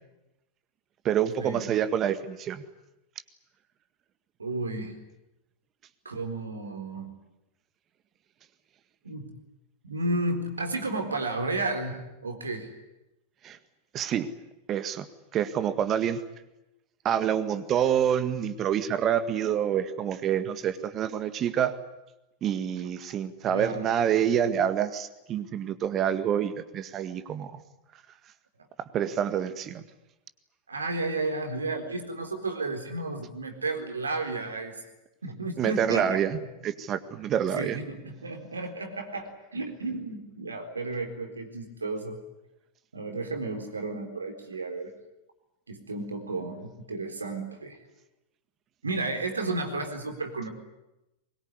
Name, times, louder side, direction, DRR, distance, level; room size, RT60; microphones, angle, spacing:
voice 1, 1.0-2.6 13.4-13.6 13.9-14.3 14.7-15.1 15.3-16.2 17.0-21.7 22.4-27.6 28.9-29.8 35.6-36.4 36.6-37.8, right 9 dB, 30° right, 11 dB, 1.8 m, -27 dB
voice 2, 4.4-5.0 6.0-7.1 9.0-9.3 9.8-12.7 23.5-23.9 30.7-34.8 35.2-36.2 37.5-42.2 42.9-44.9 45.7-47.8 48.8-50.5, right 2 dB, 75° right, 6 dB, 4.0 m, -32 dB
23.5 x 22.0 x 9.8 m, 0.96 s
figure-of-eight pair, 90°, 0 cm